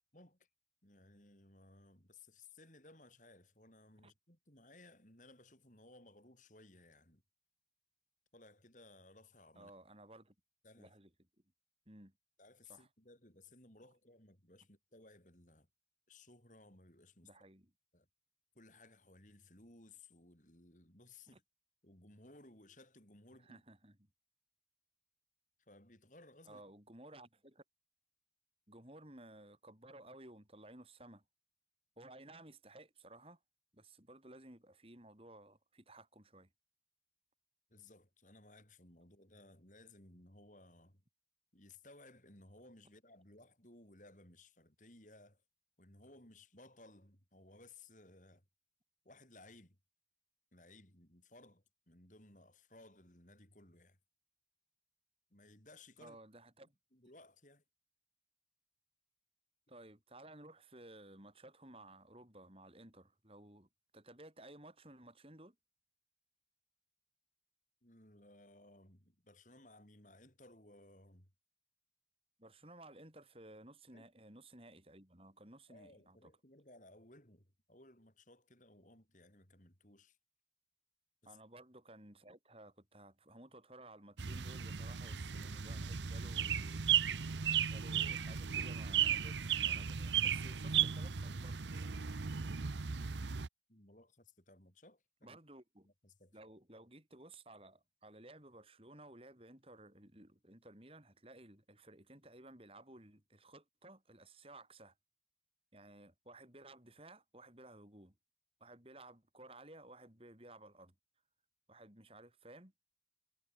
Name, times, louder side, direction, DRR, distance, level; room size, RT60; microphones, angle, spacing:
voice 1, 0.8-7.2 8.3-9.7 10.6-10.9 12.4-15.7 16.1-17.3 17.9-18.1 18.5-21.4 21.8-23.6 25.7-26.6 37.7-41.0 41.5-45.4 45.8-48.4 49.0-49.8 50.5-54.0 55.3-56.2 56.9-57.6 67.8-71.3 73.9-74.1 75.7-80.2 81.2-81.4 93.7-95.4 95.8-96.4, left 2 dB, 45° left, 6.2 m, -60 dB
voice 2, 9.5-10.3 10.8-11.1 11.9-12.1 12.7-12.9 17.2-17.7 21.3-21.4 23.4-24.0 26.4-27.6 28.7-31.2 32.0-33.4 33.7-36.5 56.0-56.8 59.7-65.6 72.4-76.3 81.2-86.9 87.7-92.0 95.2-95.9 96.3-104.9 105.7-108.1 108.6-110.9 111.7-112.7, right 1 dB, 30° right, 4.8 m, -57 dB
sound 1, 84.2-93.5, right 8 dB, 80° right, 0.8 m, -35 dB
head